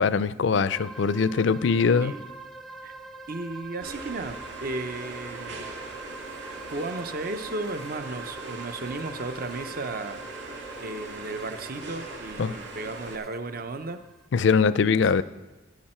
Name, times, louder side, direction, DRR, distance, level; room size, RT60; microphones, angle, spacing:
voice 1, 0.0-2.1 12.4-12.6 14.3-15.2, left 5 dB, 65° left, 0.4 m, -22 dB
sound 1, 0.7-14.3, right 3 dB, ahead, 0.5 m, -44 dB
voice 2, 3.3-5.7 6.7-10.2 10.8-14.0 14.9-15.0, right 2 dB, 50° right, 0.8 m, -34 dB
sound 2, 3.8-13.2, right 2 dB, 65° right, 2.0 m, -40 dB
16.0 x 9.5 x 4.4 m
head